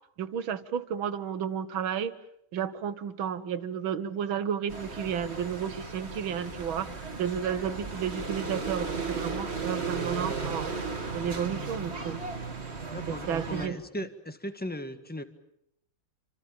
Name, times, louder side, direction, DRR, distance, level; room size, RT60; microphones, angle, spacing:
voice 1, 0.2-2.1 2.5-10.7 11.1-12.2 13.3-13.8, right 8 dB, 80° right, 13 dB, 2.1 m, -32 dB
sound 1, 4.7-13.7, right 4 dB, 30° right, 2.5 m, -35 dB
voice 2, 12.9-15.2, left 1 dB, 5° left, 9 dB, 1.5 m, -37 dB
28.5 x 26.5 x 7.2 m, 0.77 s
omnidirectional pair, 2.2 m